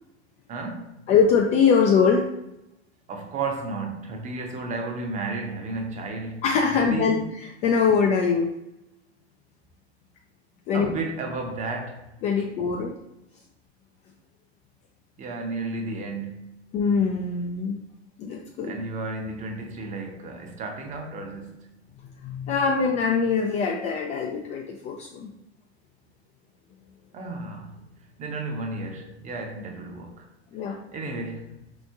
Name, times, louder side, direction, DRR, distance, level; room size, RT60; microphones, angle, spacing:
voice 1, 0.5-1.0 3.1-7.1 10.7-12.1 15.2-16.6 18.6-21.7 27.1-27.8 28.2-30.3 30.6-31.6, right 3 dB, 20° right, 0.7 m, -33 dB
voice 2, 1.1-2.2 6.4-8.5 10.7-10.9 12.2-12.9 16.7-17.8 18.2-18.7 22.2-25.3 30.5-30.8, left 5 dB, 20° left, 0.3 m, -22 dB
4.2 x 3.1 x 3.5 m
figure-of-eight pair, 90°, 33 cm